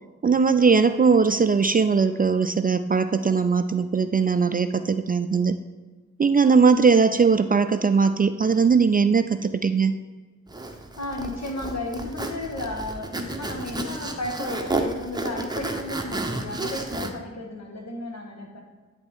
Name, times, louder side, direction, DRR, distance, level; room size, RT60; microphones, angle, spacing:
voice 1, 0.2-5.6 6.2-9.9, right 5 dB, 30° right, 10 dB, 0.4 m, -20 dB
Zipper (clothing), 10.5-17.1, right 2 dB, 15° right, 0.8 m, -31 dB
voice 2, 11.0-18.6, left 2 dB, 60° left, 1 dB, 1.5 m, -33 dB
10.5 x 3.6 x 3.6 m, 1.3 s
cardioid pair, 45°, 30 cm